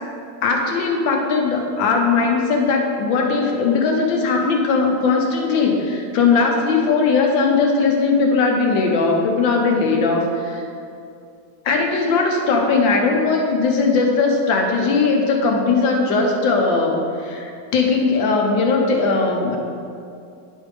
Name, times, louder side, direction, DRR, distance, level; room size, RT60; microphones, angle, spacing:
voice 1, 0.4-10.6 11.6-19.6, left 4 dB, 70° left, 1 dB, 1.6 m, -19 dB
10.0 x 3.6 x 4.9 m, 2.5 s
omnidirectional pair, 2.2 m